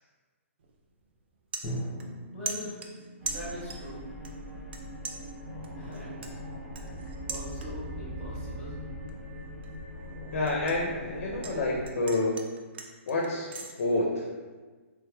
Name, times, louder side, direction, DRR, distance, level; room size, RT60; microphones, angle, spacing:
sound 1, 0.6-0.8 1.2-2.2 2.5-3.9 4.2-4.8 5.0-8.0 8.3-8.7 9.1-11.6 11.8-13.7, right 5 dB, 50° right, 0.4 m, -40 dB
Drum, 1.6-5.6, equal, 25° left, 0.8 m, -41 dB
voice 1, 2.3-2.8 3.3-4.0 5.8-6.2 7.3-8.8, equal, 5° left, -10 dB, 1.3 m, -41 dB
sound 2, 3.2-11.9, equal, 65° right, 0.8 m, -41 dB
voice 2, 10.3-12.4 13.1-13.5 13.8-14.2, left 2 dB, 65° left, -1 dB, 0.5 m, -28 dB
3.2 x 3.2 x 2.2 m, 1.4 s
hypercardioid pair, 170°, 8 cm